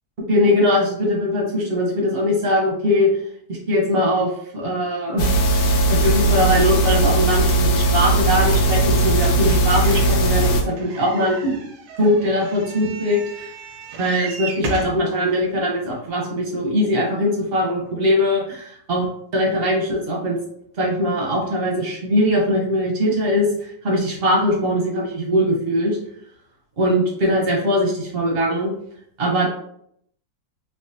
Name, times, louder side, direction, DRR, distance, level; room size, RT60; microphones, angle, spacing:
voice 1, 0.3-3.1 3.5-11.6 12.0-13.5 14.0-20.4 20.8-26.0 26.8-28.7 29.2-29.5, equal, 55° right, -2 dB, 0.7 m, -21 dB
sound 1, 5.2-10.6, right 2 dB, 70° left, 1.1 m, -18 dB
sound 2, 9.6-15.0 15.7-15.8 16.1-16.2, right 3 dB, 85° right, 1.3 m, -34 dB
3.5 x 2.3 x 2.5 m, 0.69 s
omnidirectional pair, 1.9 m